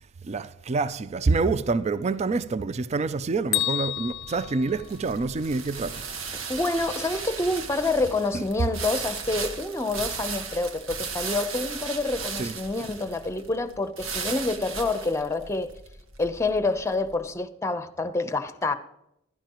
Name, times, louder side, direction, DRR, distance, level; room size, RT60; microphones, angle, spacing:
voice 1, 0.2-6.0 8.3-8.5 12.3-12.6, right 3 dB, 35° right, 0.4 m, -27 dB
Bell, 3.5-5.6, left 16 dB, 60° left, 0.3 m, -31 dB
sound 1, 3.9-17.1, right 5 dB, 85° right, 1.5 m, -36 dB
voice 2, 6.5-15.7 16.2-18.7, left 2 dB, 15° left, 0.7 m, -27 dB
15.0 x 12.5 x 3.0 m
head